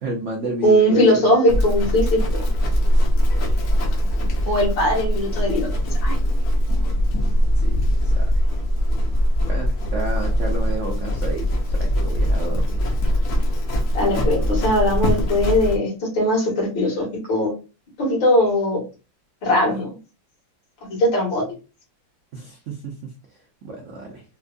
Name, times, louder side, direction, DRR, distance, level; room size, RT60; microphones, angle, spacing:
voice 1, 0.0-1.3 3.8-3.9 7.6-8.4 9.4-12.8 22.3-22.9 23.6-24.2, right 1 dB, 70° right, 1 dB, 0.7 m, -30 dB
voice 2, 0.6-2.4 4.5-5.7 6.0-6.2 13.9-17.5 18.0-18.8 19.4-19.9 21.0-21.4, equal, 75° left, -2 dB, 2.4 m, -20 dB
Livestock farm animals working animals, 1.5-15.8, equal, 60° left, 1.2 m, -21 dB
4.4 x 2.3 x 2.5 m, 0.31 s
omnidirectional pair, 2.1 m